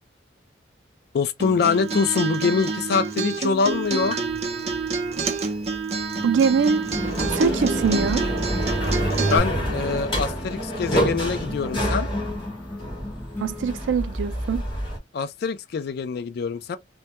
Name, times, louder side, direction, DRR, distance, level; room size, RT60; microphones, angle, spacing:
voice 1, 1.1-4.2 9.3-12.1 15.1-16.8, left 5 dB, 60° left, 0.3 m, -24 dB
Acoustic guitar, 1.4-9.4, right 4 dB, 35° right, 0.5 m, -28 dB
sound 1, 3.7-5.8 6.7-15.0, equal, 30° left, 1.1 m, -28 dB
sound 2, 6.2-14.0, left 1 dB, 10° left, 0.8 m, -35 dB
voice 2, 6.2-6.8 7.3-8.2 13.4-14.6, right 5 dB, 85° right, 0.3 m, -22 dB
2.2 x 2.2 x 2.8 m
head